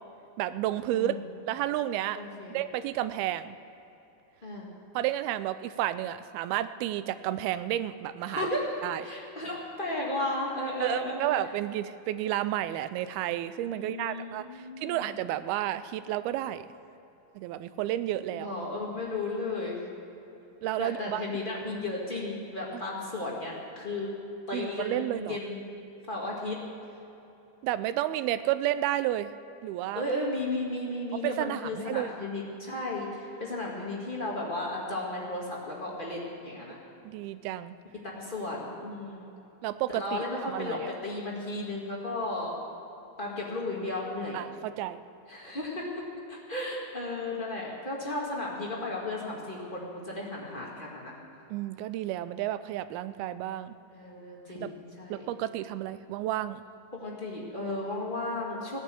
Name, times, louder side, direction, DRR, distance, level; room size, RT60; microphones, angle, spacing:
voice 1, 0.4-1.1 1.5-2.2 2.5-3.6 5.0-8.5 8.8-9.0 10.8-16.7 17.4-18.5 20.6-21.2 22.7-22.8 24.5-25.4 27.6-29.3 29.6-30.0 31.2-32.1 37.0-37.8 39.6-40.8 44.3-45.0 51.5-53.7 54.6-54.7 55.1-56.6, right 13 dB, 85° right, 14 dB, 2.4 m, -31 dB
voice 2, 2.1-2.6 4.4-4.7 8.3-11.2 13.6-15.1 18.3-19.8 20.8-24.1 24.5-25.6 26.1-26.6 29.9-36.8 37.9-39.2 39.9-42.6 43.2-44.4 45.3-46.0 46.3-51.2 53.9-55.3 56.9-58.8, left 2 dB, 35° left, -4 dB, 0.8 m, -34 dB
16.5 x 10.5 x 7.6 m, 3.0 s
omnidirectional pair, 4.5 m